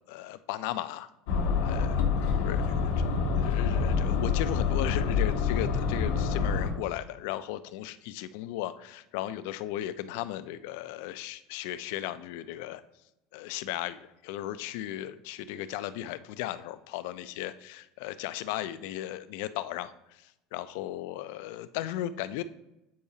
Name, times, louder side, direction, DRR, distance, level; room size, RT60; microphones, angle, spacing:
voice 1, 0.1-1.1 1.6-2.0 2.4-2.8 3.4-12.8 13.3-22.4, left 13 dB, 70° left, 14 dB, 0.4 m, -36 dB
sound 1, 1.3-6.7, left 5 dB, 85° left, 1.0 m, -27 dB
8.4 x 4.7 x 2.7 m, 0.90 s
cardioid pair, 155°, 0 cm